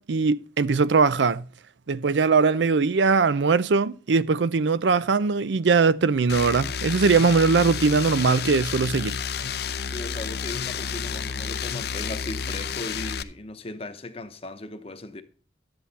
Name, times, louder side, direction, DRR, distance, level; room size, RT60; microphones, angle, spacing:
voice 1, 0.0-1.4 1.9-9.2, right 4 dB, 80° right, 0.5 m, -21 dB
sound 1, 6.3-13.2, left 6 dB, 60° left, 0.6 m, -31 dB
voice 2, 9.7-15.2, left 2 dB, 35° left, 0.8 m, -37 dB
11.5 x 8.0 x 4.1 m
head